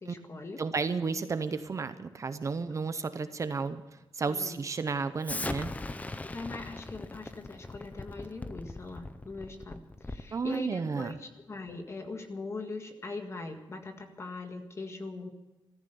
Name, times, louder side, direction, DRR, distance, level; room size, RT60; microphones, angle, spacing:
voice 1, 0.0-0.6 2.6-2.7 4.2-4.6 6.2-15.3, left 3 dB, 30° left, 5 dB, 1.8 m, -41 dB
voice 2, 0.6-3.8 4.1-5.7 10.3-11.2, right 4 dB, 35° right, 11 dB, 0.7 m, -32 dB
Explosion, 5.2-10.4, left 2 dB, 15° left, 0.7 m, -39 dB
14.0 x 14.0 x 6.9 m, 1.0 s
wide cardioid pair, 175°, 9 cm